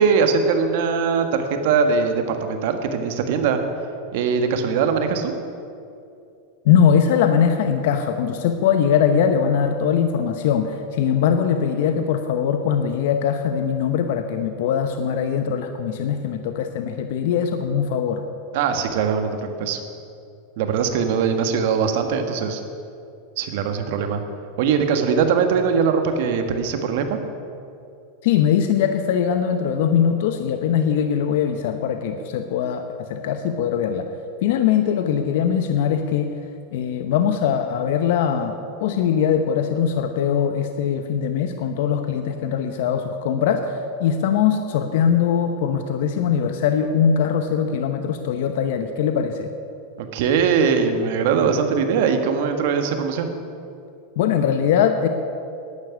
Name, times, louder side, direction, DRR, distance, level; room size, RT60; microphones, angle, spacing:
voice 1, 0.0-3.6 4.1-5.3 18.5-19.8 20.6-22.6 23.4-24.2 24.6-27.2 50.0-53.3, right 6 dB, 65° right, 7 dB, 1.6 m, -21 dB
voice 2, 6.6-18.2 28.2-34.1 34.4-36.3 36.7-49.5 54.2-55.1, left 8 dB, 70° left, 7 dB, 0.9 m, -21 dB
11.5 x 9.3 x 9.7 m, 2.5 s
hypercardioid pair, 110°, 0 cm